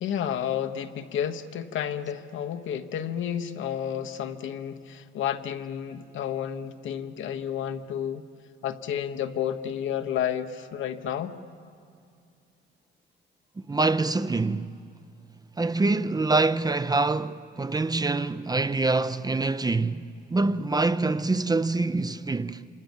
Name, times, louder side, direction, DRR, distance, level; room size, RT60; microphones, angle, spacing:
voice 1, 0.0-8.2 8.6-11.4, left 9 dB, 75° left, 1.2 m, -31 dB
voice 2, 13.7-14.8 15.6-22.6, right 3 dB, 20° right, 0.6 m, -25 dB
28.0 x 26.0 x 7.3 m
cardioid pair, 90°, 20 cm